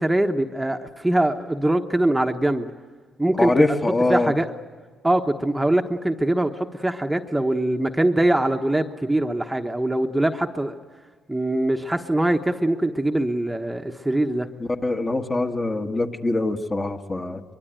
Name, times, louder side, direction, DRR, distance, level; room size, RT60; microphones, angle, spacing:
voice 1, 0.0-2.7 3.2-3.7 4.1-4.5 5.0-10.8 11.3-14.5, right 1 dB, 10° right, 5 dB, 1.2 m, -22 dB
voice 2, 3.4-4.3 14.8-17.4, left 2 dB, 25° left, 4 dB, 1.7 m, -23 dB
23.5 x 22.5 x 9.1 m, 1.5 s
cardioid pair, 90°, 0 cm